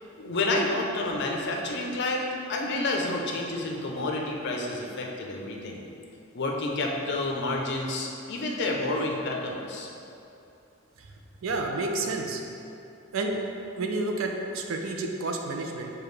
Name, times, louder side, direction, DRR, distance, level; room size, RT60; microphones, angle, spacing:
voice 1, 0.2-5.9 6.3-9.9, left 2 dB, 60° left, 0 dB, 0.5 m, -29 dB
voice 2, 11.4-12.4 13.1-13.4 13.8-15.9, right 2 dB, 80° right, 2 dB, 0.5 m, -30 dB
6.8 x 2.3 x 3.2 m, 2.7 s
head